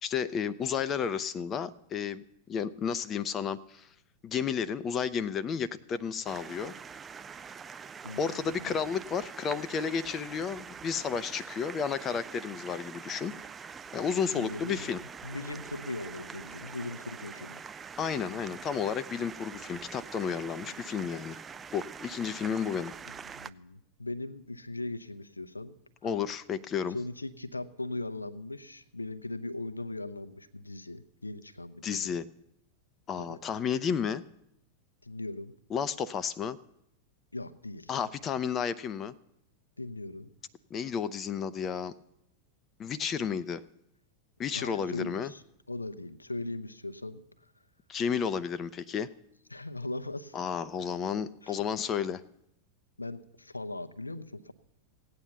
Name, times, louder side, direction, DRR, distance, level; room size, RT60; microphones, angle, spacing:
voice 1, 0.0-3.9 4.2-6.7 8.2-13.3 13.9-15.0 18.0-21.4 21.7-22.9 26.0-27.0 31.8-32.3 33.1-34.2 35.7-36.6 37.9-39.1 40.7-41.9 42.8-43.6 44.4-45.3 47.9-49.1 50.3-52.2, left 7 dB, 25° left, 13 dB, 0.7 m, -32 dB
sound 1, 6.2-23.5, right 6 dB, 20° right, 0.5 m, -45 dB
voice 2, 8.0-8.7 14.3-14.9 15.2-17.6 23.3-25.8 26.9-32.1 33.2-33.4 35.0-35.5 37.3-37.9 39.8-40.3 44.5-45.4 45.7-47.5 49.5-50.4 51.4-51.6 53.0-54.5, left 2 dB, 80° left, 11 dB, 0.8 m, -39 dB
17.0 x 9.0 x 7.1 m, 0.76 s
figure-of-eight pair, 90°, 0 cm